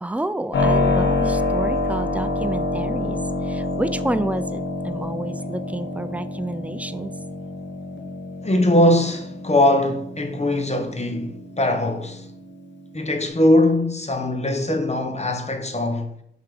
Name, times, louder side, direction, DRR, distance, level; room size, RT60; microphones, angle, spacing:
voice 1, 0.0-7.1, right 1 dB, 10° right, 0.4 m, -29 dB
Keyboard (musical), 0.5-13.3, left 2 dB, 90° left, 0.9 m, -27 dB
voice 2, 8.4-12.3 12.9-16.1, left 1 dB, 35° left, 0.9 m, -21 dB
5.7 x 3.6 x 4.9 m
wide cardioid pair, 55°, 19 cm